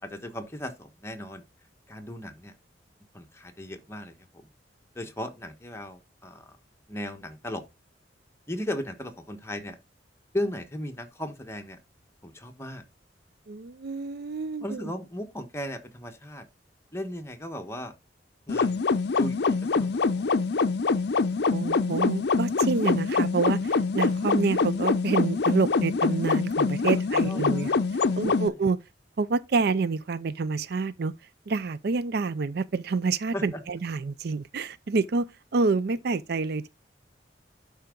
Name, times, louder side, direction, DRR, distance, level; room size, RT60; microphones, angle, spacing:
voice 1, 0.0-1.4 1.9-2.6 3.1-4.5 4.9-6.6 6.9-7.6 8.5-9.8 10.3-11.8 12.2-12.8 14.6-16.5 16.9-17.9 18.5-18.8 19.1-20.3 26.8-28.5 33.3-33.6, left 1 dB, 15° left, 1.3 m, -37 dB
voice 2, 13.5-14.9 21.5-27.7 28.1-28.8 29.2-31.1 31.5-36.7, right 4 dB, 60° right, 0.5 m, -28 dB
sound 1, 18.5-28.5, left 4 dB, 65° left, 0.5 m, -25 dB
11.5 x 4.6 x 3.8 m
head